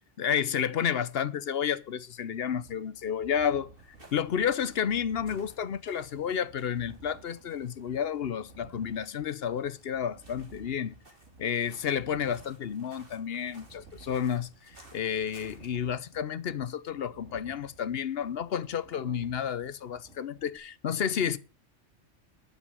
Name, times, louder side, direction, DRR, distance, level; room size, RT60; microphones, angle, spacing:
voice 1, 0.2-3.7 4.1-11.0 11.4-21.4, left 8 dB, 55° left, 0.9 m, -31 dB
sound 1, 2.4-20.6, right 3 dB, 70° right, 3.1 m, -54 dB
sound 2, 3.7-15.9, right 2 dB, 45° right, 3.4 m, -59 dB
11.0 x 7.5 x 7.2 m
omnidirectional pair, 1.3 m